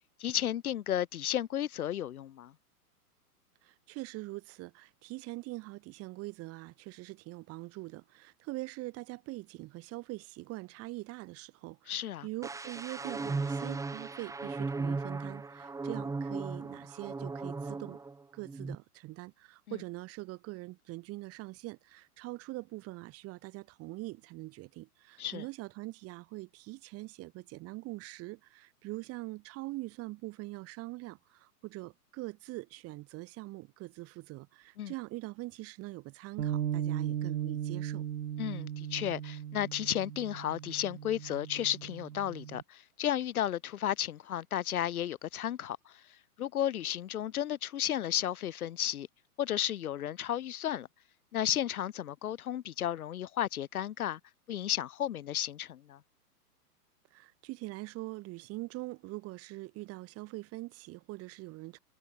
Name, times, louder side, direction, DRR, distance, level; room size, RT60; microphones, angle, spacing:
voice 1, 0.2-2.5 11.9-12.3 19.7-19.8 25.2-25.4 34.8-34.9 38.4-46.0 46.4-49.1 49.4-50.9 51.3-54.2 54.5-56.0, left 11 dB, 65° left, 4.3 m, -33 dB
voice 2, 3.6-18.0 18.3-38.0 57.1-61.8, right 20 dB, 30° right, 2.7 m, -43 dB
sound 1, 12.4-18.1 18.4-18.8, right 3 dB, 5° right, 2.1 m, -36 dB
Bass guitar, 36.4-42.6, right 10 dB, 70° right, 1.7 m, -37 dB
hypercardioid pair, 130°, 47 cm